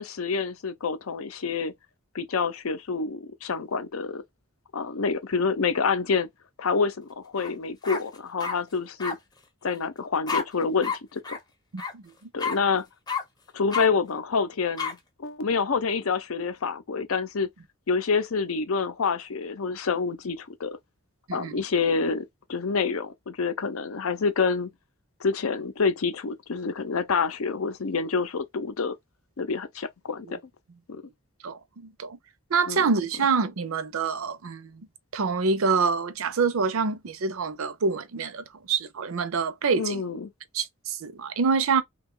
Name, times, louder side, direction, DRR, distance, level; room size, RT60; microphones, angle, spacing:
voice 1, 0.0-1.7 2.1-4.2 4.7-6.3 6.6-9.2 9.6-11.4 12.3-12.9 13.5-17.5 17.9-20.8 21.3-24.7 25.2-29.0 29.4-30.4 30.9-31.0 32.7-32.9 39.7-40.3, left 5 dB, 80° left, 0.6 m, -27 dB
sound 1, 7.4-7.5 7.8-8.6 9.0-9.1 10.3-10.4 10.8-11.0 11.2-11.4 11.8-11.9 12.4-12.6 13.1-13.2 13.7-13.9 14.8-14.9, left 5 dB, 20° left, 0.6 m, -29 dB
voice 2, 11.7-12.1 21.3-21.6 30.3-30.4 31.4-32.2 32.5-34.9 35.1-40.0 40.5-41.8, right 5 dB, 75° right, 0.6 m, -26 dB
3.0 x 2.3 x 3.6 m
head